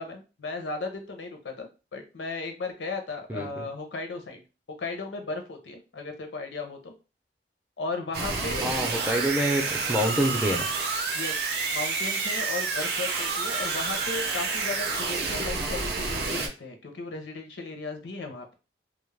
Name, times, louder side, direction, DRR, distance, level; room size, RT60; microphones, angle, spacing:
voice 1, 0.0-4.4 4.8-6.9 7.8-8.7 11.1-18.6, left 3 dB, 80° left, 5 dB, 0.6 m, -36 dB
voice 2, 3.3-3.7 8.6-10.7, equal, 10° right, 2 dB, 0.4 m, -27 dB
sound 1, 8.1-16.5, right 4 dB, 60° right, 0.5 m, -29 dB
2.3 x 2.0 x 3.2 m, 0.31 s
head